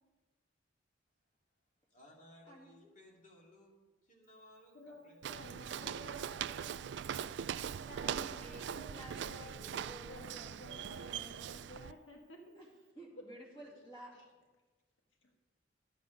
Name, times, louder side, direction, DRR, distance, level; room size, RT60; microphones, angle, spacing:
voice 1, 1.9-5.7, left 1 dB, 40° left, -2 dB, 2.6 m, -61 dB
voice 2, 2.5-2.9 5.8-10.3 12.5-12.7 12.9-14.1, right 1 dB, 25° left, -3 dB, 2.6 m, -53 dB
voice 3, 4.7-6.1 8.1-12.4 14.1-14.2, left 1 dB, 85° left, 1 dB, 1.5 m, -54 dB
Walk footsteps, 5.2-11.9, right 8 dB, 65° right, 0.3 m, -41 dB
12.5 x 8.3 x 5.1 m, 1.3 s
head